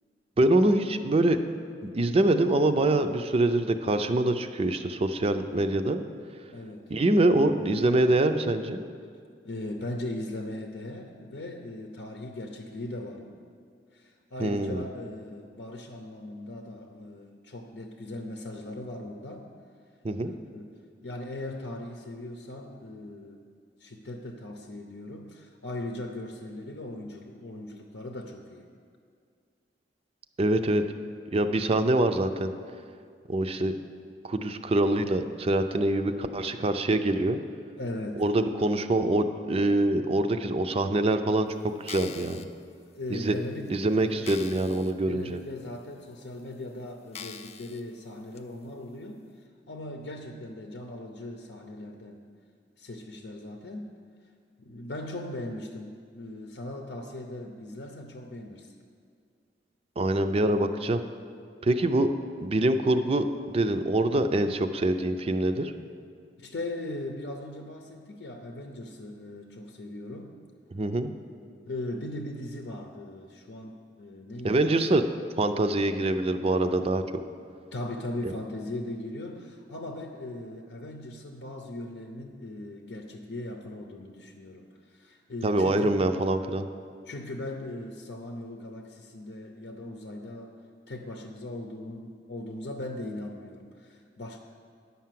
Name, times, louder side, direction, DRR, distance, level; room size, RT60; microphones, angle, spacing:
voice 1, 0.4-1.4 1.9-6.0 6.9-8.8 14.4-14.8 20.0-20.3 30.4-30.8 31.3-32.5 33.3-33.7 34.2-37.4 38.2-41.5 41.8-42.4 43.1-43.3 43.7-45.4 60.0-61.0 61.6-62.1 62.4-65.7 70.7-71.1 74.4-75.0 75.4-77.0 85.4-86.7, right 1 dB, 35° right, 9 dB, 0.5 m, -24 dB
voice 2, 6.5-6.9 9.4-13.4 13.9-19.5 20.2-20.7 21.0-23.4 23.8-28.7 37.8-38.2 42.9-43.7 44.1-44.3 45.1-49.2 49.7-52.3 52.8-53.9 54.6-58.7 66.4-70.4 71.7-75.0 77.7-86.0 87.1-90.6 90.9-94.4, left 1 dB, 75° left, 3 dB, 0.7 m, -39 dB
sound 1, 41.7-42.4 43.1-43.2 43.7-43.8 44.2-44.9 45.4-45.5 46.2-46.3 47.1-47.8 48.4-48.5, left 7 dB, 40° left, 0.4 m, -42 dB
10.0 x 5.7 x 7.5 m, 2.2 s
head